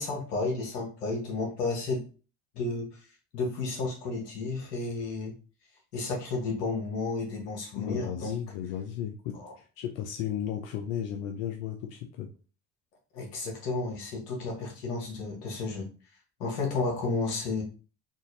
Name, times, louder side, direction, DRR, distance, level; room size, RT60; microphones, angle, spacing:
voice 1, 0.0-2.0 2.5-2.8 3.3-5.3 5.9-8.3 9.3-9.5 13.1-15.9 16.4-17.6, left 3 dB, 85° left, 0 dB, 1.1 m, -32 dB
voice 2, 7.8-12.3, left 9 dB, 70° left, 4 dB, 0.6 m, -34 dB
3.9 x 2.4 x 2.6 m, 0.36 s
hypercardioid pair, 60°, 46 cm